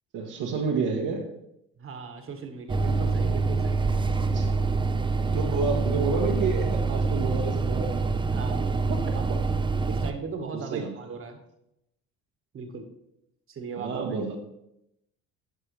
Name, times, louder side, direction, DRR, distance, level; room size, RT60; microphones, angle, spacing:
voice 1, 0.1-1.3 4.3-4.5 5.3-8.1 8.9-9.2 10.5-11.0 13.8-14.4, right 4 dB, 65° right, 0 dB, 1.3 m, -29 dB
voice 2, 1.8-3.8 5.3-5.5 8.3-8.8 9.1-9.3 9.9-11.4 12.5-12.8 13.5-14.1, right 5 dB, 40° right, 5 dB, 1.5 m, -38 dB
sound 1, 2.7-10.1, right 4 dB, 15° right, 0.6 m, -26 dB
10.5 x 5.5 x 3.3 m, 0.82 s
hypercardioid pair, 65°, 32 cm